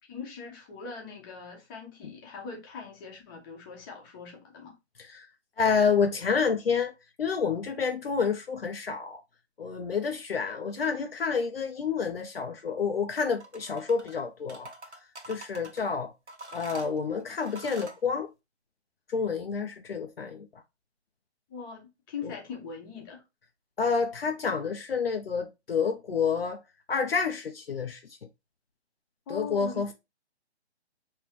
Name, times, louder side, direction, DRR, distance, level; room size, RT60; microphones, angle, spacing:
voice 1, 0.0-4.7 21.5-23.2 29.3-29.9, left 5 dB, 20° left, 1.1 m, -41 dB
voice 2, 5.6-6.9 7.2-9.2 9.6-14.7 15.3-16.1 16.5-18.3 19.1-20.5 22.2-22.3 23.8-26.6 26.9-28.0 29.3-29.9, left 5 dB, 60° left, 0.7 m, -29 dB
sound 1, 13.3-14.2 14.5-15.8 16.3-18.0, right 2 dB, 85° right, 1.2 m, -45 dB
5.2 x 3.2 x 3.0 m
figure-of-eight pair, 140°, 34 cm